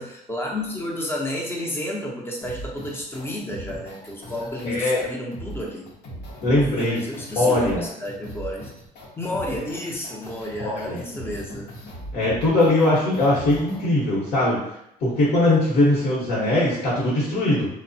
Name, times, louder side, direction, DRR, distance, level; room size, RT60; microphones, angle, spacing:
voice 1, 0.0-5.8 6.6-8.7 9.2-11.7, left 1 dB, 15° left, -1 dB, 0.6 m, -31 dB
sound 1, 2.4-13.8, equal, 90° left, 0.8 m, -39 dB
voice 2, 4.6-5.0 6.4-7.0 7.4-7.9 10.6-11.0 12.1-14.6 15.0-17.7, left 1 dB, 60° left, -8 dB, 1.0 m, -20 dB
3.2 x 2.0 x 2.6 m, 0.78 s
cardioid pair, 110°, 17 cm